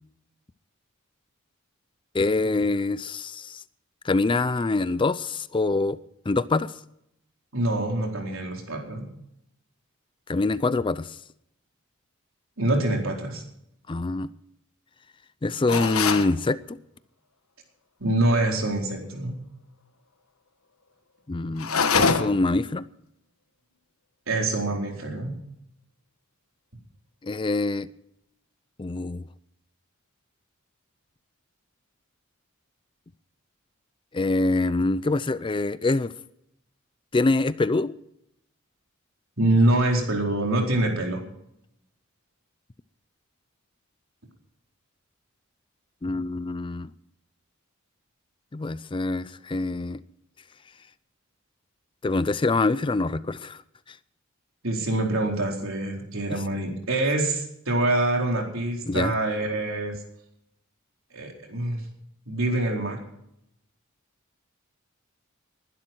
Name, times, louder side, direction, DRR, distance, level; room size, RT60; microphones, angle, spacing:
voice 1, 2.1-3.6 4.0-6.0 6.3-6.7 10.3-11.2 13.9-14.3 15.4-16.8 21.3-21.7 21.9-22.9 27.2-27.9 28.8-29.2 34.1-36.1 37.1-37.9 46.0-46.9 48.5-50.0 52.0-53.6 53.9-54.0 56.3-56.4 58.9-59.1, left 3 dB, 25° left, 16 dB, 0.4 m, -25 dB
voice 2, 7.5-9.1 12.6-13.4 18.0-19.3 24.3-25.3 39.4-41.2 54.6-59.9 61.1-61.8 62.3-63.0, right 2 dB, 70° right, 1 dB, 4.3 m, -25 dB
sound 1, 15.7-16.3 21.6-22.5, left 5 dB, 85° left, 1.4 m, -23 dB
20.5 x 12.0 x 4.5 m, 0.77 s
head